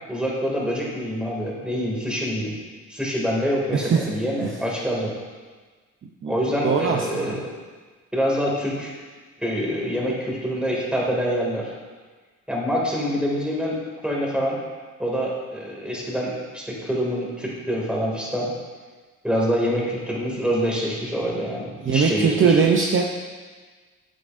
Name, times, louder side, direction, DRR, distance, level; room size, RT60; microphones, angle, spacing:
voice 1, 0.1-2.5 2.9-5.1 6.3-7.5 8.1-8.9 9.4-11.7 12.5-14.6 15.0-18.5 19.2-22.6, equal, 5° right, -4 dB, 2.4 m, -26 dB
voice 2, 3.7-4.1 4.4-4.6 6.2-6.3 6.6-7.4 21.8-23.0, right 6 dB, 40° right, 1 dB, 0.7 m, -20 dB
9.0 x 7.9 x 2.6 m, 1.4 s
cardioid pair, 90°, 30 cm